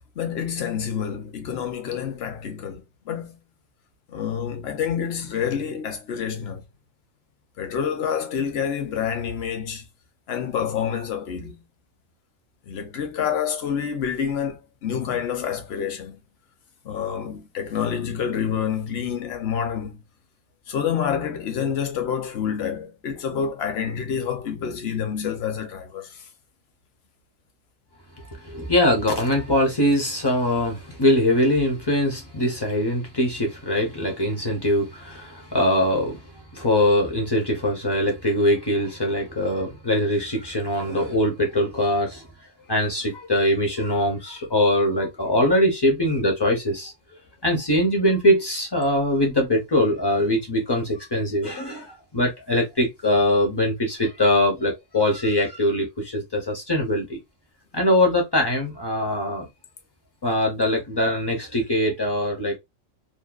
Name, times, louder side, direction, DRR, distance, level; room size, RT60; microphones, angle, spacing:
voice 1, 0.2-3.4 4.1-6.6 7.6-9.8 10.3-11.6 12.7-16.2 16.8-20.0 20.7-26.3, left 7 dB, 60° left, 0.8 m, -28 dB
voice 2, 28.2-36.2 36.5-42.3 42.7-46.9 47.4-57.2 57.7-59.5 60.2-62.6, left 1 dB, 35° left, 0.4 m, -22 dB
2.7 x 2.2 x 2.2 m
omnidirectional pair, 1.3 m